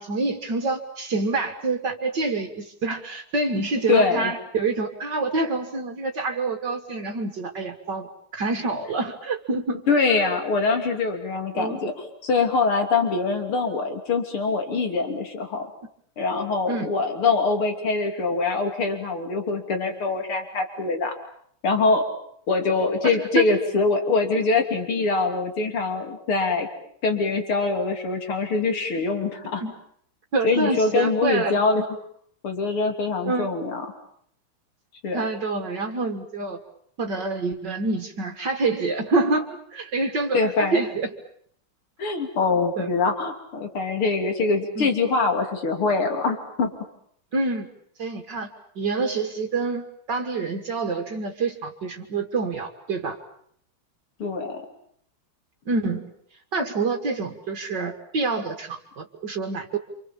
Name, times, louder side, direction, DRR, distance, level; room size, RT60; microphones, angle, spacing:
voice 1, 0.0-9.8 11.5-11.8 16.7-16.9 23.0-23.6 29.6-29.7 30.3-31.6 33.3-33.5 35.1-36.6 37.0-41.1 42.8-42.9 44.8-44.9 47.3-47.7 48.0-48.5 48.8-53.2 55.7-56.1 56.5-59.8, right 3 dB, 55° right, 5 dB, 2.3 m, -27 dB
voice 2, 3.9-4.3 9.9-11.9 12.2-15.7 16.2-21.1 21.6-22.0 22.5-26.7 27.0-29.6 30.4-31.9 32.4-33.9 35.0-35.2 40.3-40.8 42.0-46.7 54.2-54.6, left 4 dB, 80° left, 4 dB, 3.9 m, -23 dB
28.5 x 27.0 x 7.3 m, 0.66 s
omnidirectional pair, 2.4 m